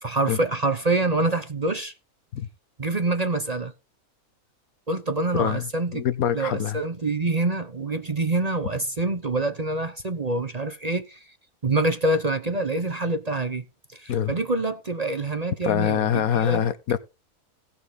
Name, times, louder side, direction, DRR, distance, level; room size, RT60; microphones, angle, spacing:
voice 1, 0.0-1.9 2.8-3.7 4.9-6.0 6.3-11.3 11.6-13.6 13.9-16.6, right 2 dB, 30° right, 0.9 m, -26 dB
voice 2, 5.9-6.8 14.1-14.3 15.6-17.0, left 9 dB, 75° left, 1.3 m, -24 dB
17.5 x 6.0 x 4.0 m
omnidirectional pair, 1.6 m